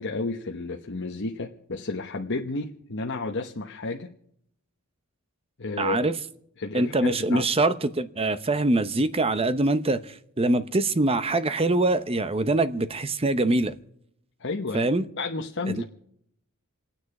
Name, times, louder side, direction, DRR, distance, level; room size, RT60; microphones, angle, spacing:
voice 1, 0.0-4.1 5.6-6.1 6.6-7.4 14.4-14.9 15.2-15.8, left 3 dB, 60° left, 1 dB, 1.1 m, -31 dB
voice 2, 5.8-6.1 6.7-13.7 14.7-15.0 15.7-15.8, right 2 dB, 25° right, 12 dB, 0.8 m, -24 dB
28.0 x 9.6 x 4.8 m, 0.71 s
head